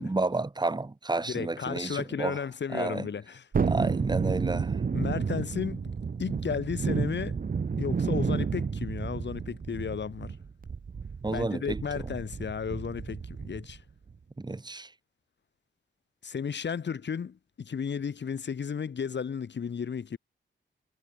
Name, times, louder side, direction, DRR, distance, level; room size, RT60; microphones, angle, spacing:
voice 1, 0.0-2.4 2.7-3.1 3.6-4.8 11.2-11.8 14.4-14.9, right 2 dB, 20° right, 5.3 m, -31 dB
voice 2, 1.3-3.4 4.9-5.9 6.2-7.4 7.8-10.4 11.3-13.8 16.2-20.2, left 6 dB, 60° left, 6.7 m, -34 dB
Thunderstorm, 3.5-13.8 14.1-14.2, right 5 dB, 45° right, 2.3 m, -31 dB
wide cardioid pair, 140°, 20 cm